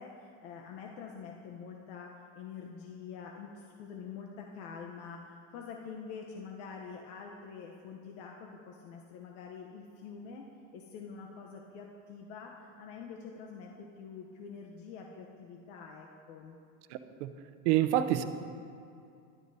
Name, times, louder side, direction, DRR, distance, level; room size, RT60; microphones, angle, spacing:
voice 1, 0.0-10.5 10.7-16.6, left 6 dB, 75° left, 0 dB, 0.9 m, -46 dB
voice 2, 16.9-17.3 17.6-18.2, right 12 dB, 75° right, 10 dB, 0.7 m, -27 dB
12.5 x 12.0 x 2.7 m, 2.5 s
supercardioid pair, 155°, 36 cm